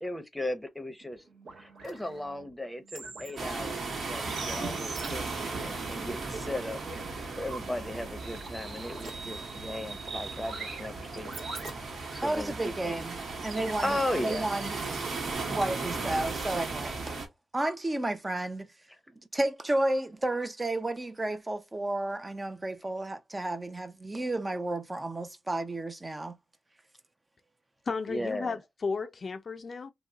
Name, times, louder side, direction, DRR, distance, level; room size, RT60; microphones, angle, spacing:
voice 1, 0.0-1.2 1.6-6.8 7.3-11.3 12.1-13.0 13.8-14.5 28.1-28.6, left 1 dB, 10° left, 0.8 m, -36 dB
sound 1, 1.0-15.3, right 3 dB, 80° right, 1.1 m, -44 dB
sound 2, 3.4-17.3, right 3 dB, 65° right, 1.1 m, -37 dB
sound 3, 6.1-6.7 8.0-12.9 13.5-13.6 15.6-16.3, right 2 dB, 45° right, 1.2 m, -52 dB
voice 2, 12.2-13.2 13.4-14.0 14.2-14.8 15.5-17.2 17.5-18.7 19.3-26.4, right 1 dB, 25° right, 0.5 m, -32 dB
voice 3, 27.9-29.9, left 4 dB, 50° left, 0.4 m, -34 dB
2.9 x 2.0 x 3.5 m
cardioid pair, 70°, 0 cm